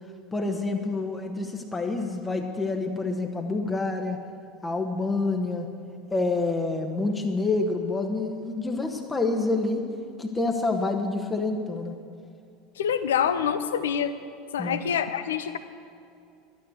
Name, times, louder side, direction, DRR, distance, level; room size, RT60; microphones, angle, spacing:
voice 1, 0.3-4.2 4.6-5.7 6.1-9.8 10.2-11.9 14.6-14.9, left 3 dB, 15° left, 3 dB, 1.2 m, -27 dB
voice 2, 12.8-14.1 14.5-15.6, left 8 dB, 65° left, 11 dB, 0.7 m, -26 dB
12.0 x 9.7 x 8.0 m, 2.5 s
figure-of-eight pair, 75°, 0 cm